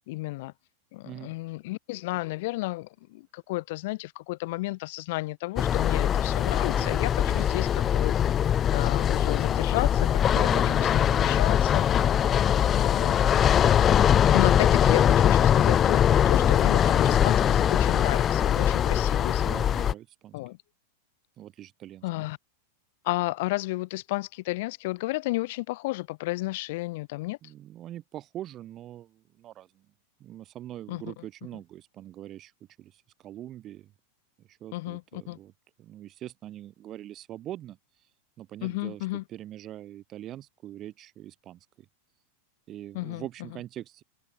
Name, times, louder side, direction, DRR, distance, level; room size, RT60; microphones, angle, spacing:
voice 1, 0.1-0.5 0.9-8.1 8.7-11.9 12.7-13.2 14.3-19.5 20.3-20.6 22.0-22.4 23.0-27.4 30.9-31.0 34.7-35.4 38.6-39.2 42.9-43.2, left 21 dB, 50° left, 3.0 m, -32 dB
voice 2, 1.0-1.4 6.8-7.5 10.3-11.3 12.0-12.2 16.4-16.6 19.4-20.4 21.4-22.0 27.4-29.9 30.2-32.5 32.8-33.9 34.4-35.5 35.8-37.8 38.4-41.9 42.7-44.0, right 12 dB, 30° right, 2.9 m, -42 dB
sound 1, 5.6-19.9, left 9 dB, 25° left, 0.5 m, -22 dB
figure-of-eight pair, 90°, 0 cm